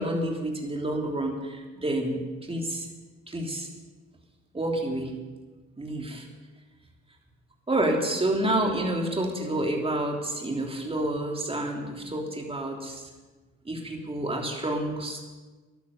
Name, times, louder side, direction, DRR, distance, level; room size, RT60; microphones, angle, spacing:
voice 1, 0.0-2.2 2.5-2.9 3.3-3.7 4.5-5.1 5.8-6.3 7.7-13.1 13.6-15.2, right 1 dB, 20° right, 1 dB, 3.2 m, -29 dB
13.0 x 11.5 x 7.0 m, 1.3 s
cardioid pair, 90°, 30 cm